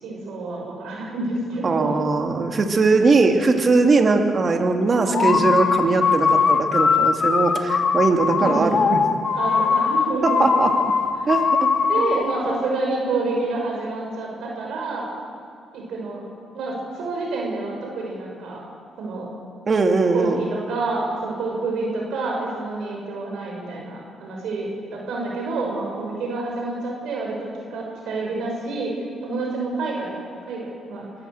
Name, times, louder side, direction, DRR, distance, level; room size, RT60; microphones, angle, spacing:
voice 1, 0.0-2.1 5.1-5.5 8.4-9.0 9.3-10.4 11.1-11.4 11.9-15.1 15.7-16.2 16.5-18.6 19.0-19.3 20.1-28.9 29.2-30.1 30.5-31.1, right 3 dB, 75° right, -1 dB, 5.9 m, -28 dB
voice 2, 1.6-9.0 10.2-10.7 11.3-11.7 12.1-12.2 19.7-20.4, right 3 dB, 40° right, 4 dB, 2.7 m, -20 dB
sound 1, 5.1-12.3, left 5 dB, 50° left, 1.6 m, -20 dB
23.0 x 15.5 x 7.9 m, 2.4 s
cardioid pair, 90°, 0 cm